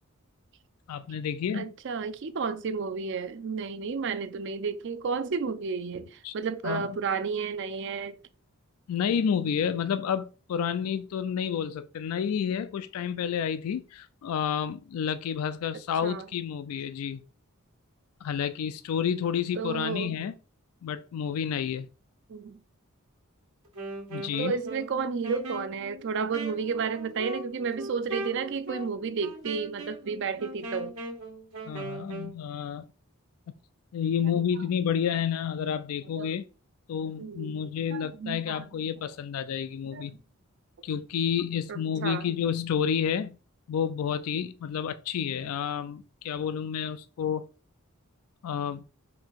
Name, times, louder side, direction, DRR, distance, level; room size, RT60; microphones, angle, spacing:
voice 1, 0.9-1.7 6.2-6.3 6.6-7.0 8.9-17.2 18.2-20.3 20.8-21.9 24.1-24.5 31.7-32.8 33.9-36.4 36.9-40.1 40.8-43.3 43.7-47.4 48.4-48.8, left 8 dB, 85° left, 0.3 m, -30 dB
voice 2, 1.5-8.2 16.0-16.3 19.6-20.2 22.3-22.6 24.4-30.9 36.2-36.3 37.2-37.5 37.9-38.6 39.9-40.1 41.7-42.3, right 5 dB, 55° right, 0.4 m, -32 dB
Wind instrument woodwind instrument, 23.6-32.4, right 2 dB, 80° right, 1.4 m, -40 dB
4.0 x 2.7 x 4.5 m
head